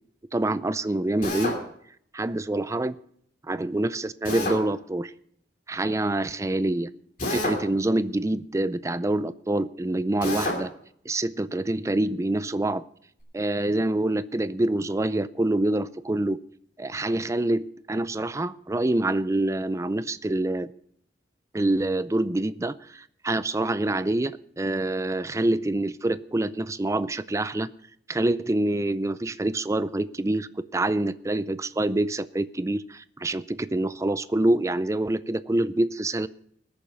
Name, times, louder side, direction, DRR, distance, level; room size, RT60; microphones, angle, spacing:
voice 1, 0.3-1.6 2.1-3.0 3.5-5.1 5.7-6.9 7.3-10.7 11.1-12.8 13.3-16.4 16.8-20.7 21.5-27.7 28.1-36.3, right 1 dB, 15° right, 15 dB, 0.4 m, -26 dB
Drill, 1.2-1.6 4.2-4.6 7.2-7.6 10.2-10.6, left 2 dB, 50° left, 2.8 m, -28 dB
20.0 x 7.1 x 5.2 m, 0.65 s
head